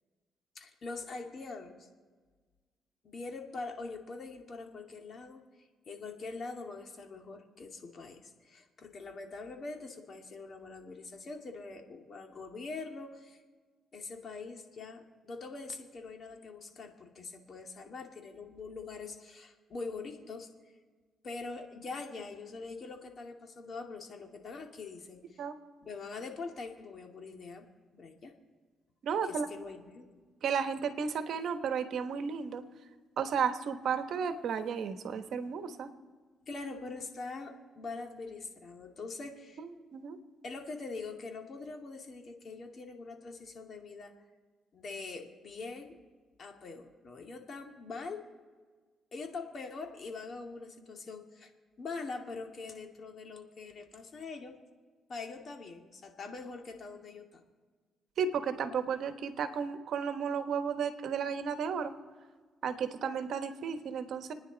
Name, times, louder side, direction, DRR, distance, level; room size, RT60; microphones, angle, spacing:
voice 1, 0.6-1.9 3.0-13.4 13.9-20.5 21.2-25.4 25.8-27.7 27.9-28.3 29.2-30.2 36.5-39.6 40.4-44.1 44.7-45.9 46.4-48.2 49.1-51.5 51.8-54.5 55.1-57.5, left 3 dB, 50° left, 3 dB, 2.3 m, -43 dB
voice 2, 29.0-29.5 30.4-32.6 33.2-35.9 39.6-40.2 58.2-61.9 62.6-64.3, right 6 dB, 70° right, 8 dB, 1.3 m, -33 dB
29.5 x 9.9 x 4.0 m, 1.4 s
cardioid pair, 90°, 0 cm